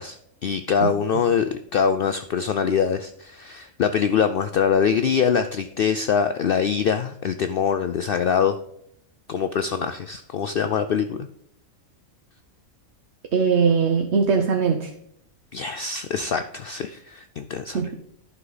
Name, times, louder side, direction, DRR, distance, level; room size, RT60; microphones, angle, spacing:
voice 1, 0.0-8.6 9.3-11.3 15.5-17.8, left 7 dB, 70° left, 9 dB, 0.5 m, -23 dB
voice 2, 13.3-14.9 17.7-17.9, right 5 dB, 60° right, 4 dB, 1.0 m, -20 dB
11.0 x 5.7 x 4.0 m, 0.72 s
omnidirectional pair, 1.4 m